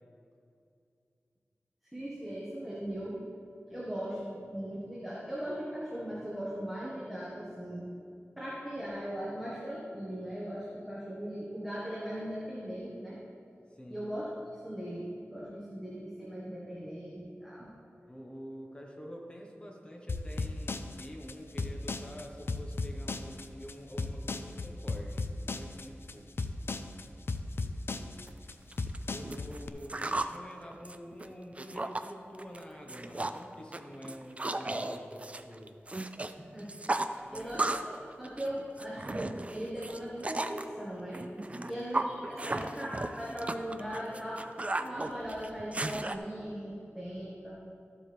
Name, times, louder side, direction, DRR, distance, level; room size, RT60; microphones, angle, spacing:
voice 1, 1.9-3.2 3.7-7.9 8.4-13.2 13.9-17.7 36.4-41.2 41.7-47.6, equal, ahead, -7 dB, 1.7 m, -39 dB
voice 2, 13.7-14.1 18.1-26.3 27.6-28.2 29.1-35.7 37.2-37.6 41.5-41.9 42.2-42.6 42.9-43.5 43.8-44.2, equal, 25° left, 0 dB, 1.4 m, -47 dB
sound 1, 20.1-29.7, left 3 dB, 60° left, 0.5 m, -35 dB
sound 2, 28.3-28.4 28.7-30.4 30.7-32.1 32.4-32.6 32.9-33.4 33.7-36.3 36.6-38.0 38.2-40.6 41.1-46.2, right 2 dB, 30° right, 0.4 m, -35 dB
13.0 x 7.5 x 3.5 m, 2.6 s
wide cardioid pair, 80°, 5 cm